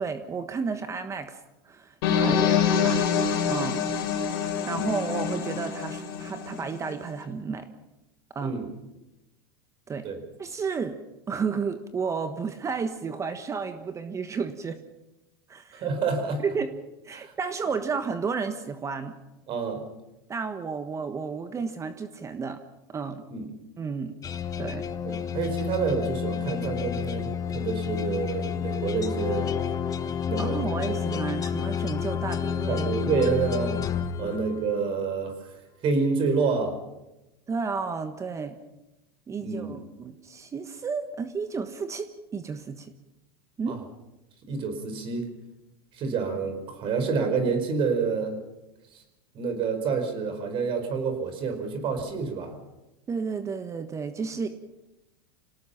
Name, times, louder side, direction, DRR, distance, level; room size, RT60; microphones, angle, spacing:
voice 1, 0.0-1.4 1.6-3.0 3.5-3.8 4.3-7.7 8.3-8.6 9.9-10.0 10.4-10.9 11.3-14.8 15.5-15.8 16.4-16.7 17.0-19.1 20.3-22.6 22.9-23.2 23.8-24.1 24.6-24.9 30.4-32.9 37.5-38.6 39.3-42.9 43.6-43.8 53.1-54.5, right 5 dB, 20° right, 9 dB, 1.3 m, -32 dB
sound 1, 2.0-6.9, left 7 dB, 70° left, 4.2 m, -26 dB
voice 2, 2.1-2.5 4.7-4.9 8.4-8.7 10.0-10.2 15.7-16.5 17.1-17.3 19.5-19.8 23.3-23.5 25.0-29.6 30.3-30.6 30.9-31.2 32.7-33.8 34.2-36.8 39.4-39.8 43.7-43.8 44.5-45.3 45.9-48.4 48.9-49.0 49.3-52.6, right 5 dB, 40° right, 7 dB, 5.1 m, -28 dB
sound 2, 24.2-34.9, left 8 dB, 25° left, 1.4 m, -30 dB
27.0 x 18.5 x 5.8 m, 0.97 s
hypercardioid pair, 105°, 13 cm